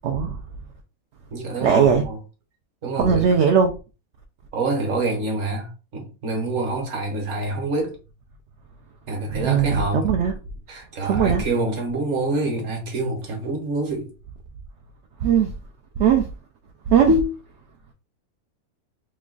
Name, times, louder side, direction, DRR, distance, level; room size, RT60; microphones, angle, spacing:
voice 1, 0.0-0.4 1.6-2.0 3.0-3.7 9.3-10.4 11.0-11.4 15.2-15.5 16.0-16.3 16.9-17.1, right 7 dB, 70° right, 0.6 m, -19 dB
voice 2, 1.3-2.2 2.8-3.3 4.5-8.0 9.1-10.1 10.7-14.1 17.1-17.3, right 2 dB, 55° right, 1.3 m, -26 dB
3.1 x 2.4 x 3.7 m
omnidirectional pair, 1.6 m